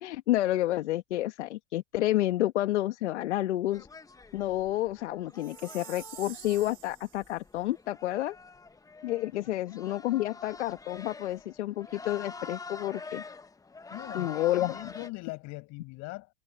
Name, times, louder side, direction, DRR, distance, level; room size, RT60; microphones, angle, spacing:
voice 1, 0.0-3.9 4.3-8.4 9.0-13.2 14.1-14.8, left 15 dB, 75° left, 1.5 m, -30 dB
sound 1, 3.7-15.1, left 4 dB, 10° left, 1.1 m, -46 dB
Chime, 5.4-7.4, right 17 dB, 70° right, 3.1 m, -48 dB
voice 2, 13.9-16.3, left 24 dB, 50° left, 6.2 m, -42 dB
hypercardioid pair, 105°, 35 cm